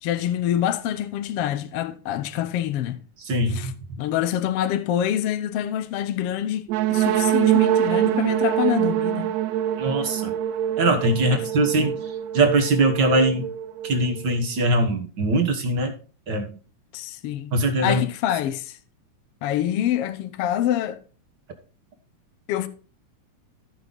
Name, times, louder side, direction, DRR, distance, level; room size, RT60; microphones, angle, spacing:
voice 1, 0.0-3.0 3.5-3.7 4.0-9.3 11.3-11.4 11.8-12.0 16.9-17.5 17.8-18.8 19.4-21.0 22.5-22.7, left 11 dB, 80° left, 1.3 m, -26 dB
voice 2, 3.2-3.7 9.8-10.3 10.8-13.5 13.8-15.9 16.3-16.5 17.5-18.0, right 2 dB, 50° right, 1.4 m, -22 dB
sound 1, 6.7-14.4, right 11 dB, 80° right, 1.7 m, -24 dB
15.0 x 5.5 x 4.0 m
omnidirectional pair, 3.7 m